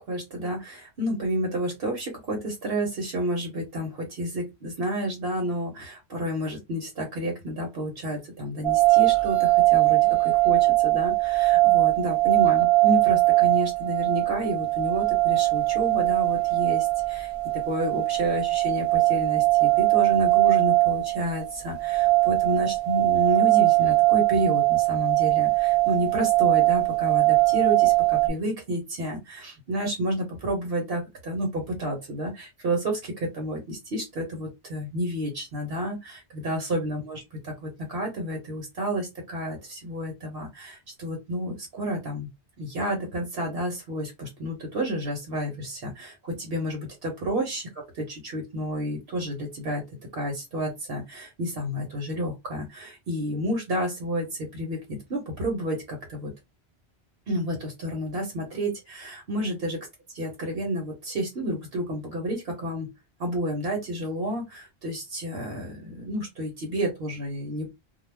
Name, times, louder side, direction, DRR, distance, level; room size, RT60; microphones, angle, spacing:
voice 1, 0.1-17.3 17.7-42.3 42.6-56.3 57.3-59.8 60.1-62.9 63.2-67.7, equal, 70° right, 1.1 m, -30 dB
sound 1, 8.6-28.3, right 20 dB, 55° right, 0.4 m, -21 dB
2.3 x 2.2 x 3.2 m
omnidirectional pair, 1.1 m